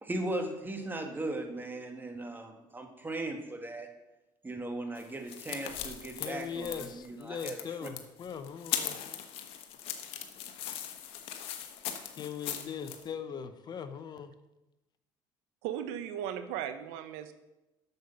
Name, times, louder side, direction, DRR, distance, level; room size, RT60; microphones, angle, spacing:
voice 1, 0.0-3.9 4.4-7.9, right 2 dB, 20° right, 5 dB, 1.9 m, -38 dB
sound 1, 5.0-13.0, left 10 dB, 70° left, 1.1 m, -39 dB
voice 2, 6.2-9.0 12.2-14.3, left 7 dB, 45° left, 11 dB, 0.9 m, -40 dB
voice 3, 15.6-17.3, right 10 dB, 85° right, 10 dB, 0.7 m, -37 dB
7.9 x 6.7 x 6.9 m, 0.98 s
supercardioid pair, 75°, 10 cm